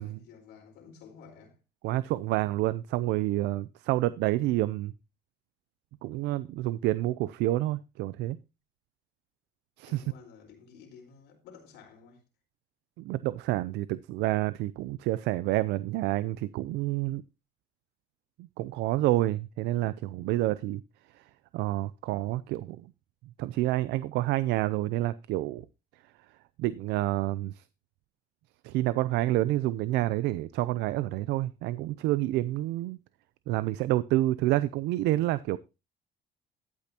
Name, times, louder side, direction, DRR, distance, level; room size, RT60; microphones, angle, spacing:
voice 1, 0.0-1.6 9.8-12.2, left 6 dB, 85° left, 4.4 m, -52 dB
voice 2, 1.8-4.9 6.0-8.4 9.8-10.0 13.0-17.2 18.6-20.8 21.5-22.8 23.4-25.6 26.6-27.6 28.6-33.0 33.5-35.6, right 16 dB, 85° right, 0.5 m, -28 dB
14.5 x 8.6 x 2.8 m
cardioid pair, 110°, 17 cm